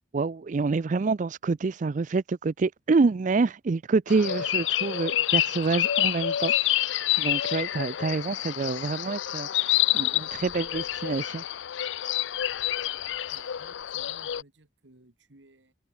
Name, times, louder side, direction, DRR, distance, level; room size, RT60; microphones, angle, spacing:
voice 1, 0.1-11.4, right 4 dB, 45° right, 0.4 m, -27 dB
sound 1, 4.1-14.4, left 12 dB, 85° left, 0.5 m, -28 dB
voice 2, 13.3-15.7, right 2 dB, 80° right, 2.1 m, -56 dB
head